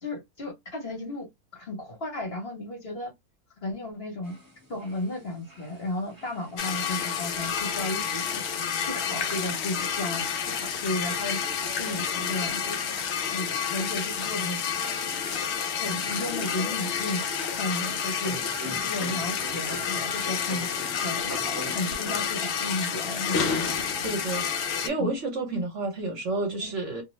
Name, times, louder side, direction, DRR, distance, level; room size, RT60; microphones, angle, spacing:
voice 1, 0.0-1.3 1.5-3.1 3.6-4.4 4.7-8.6 8.9-11.4 11.8-12.8 13.3-14.8 15.1-15.4 15.8-17.2 17.6-20.7 21.0-23.5 25.0-25.1 26.0-26.2 26.6-26.7, left 1 dB, 45° left, 1.1 m, -34 dB
sound 1, 4.2-22.3, right 1 dB, 20° right, 0.7 m, -47 dB
sound 2, 6.6-24.9, left 7 dB, 65° left, 0.7 m, -29 dB
voice 2, 24.0-24.5 24.8-27.0, right 2 dB, 55° right, 1.1 m, -30 dB
2.6 x 2.0 x 3.0 m
omnidirectional pair, 1.6 m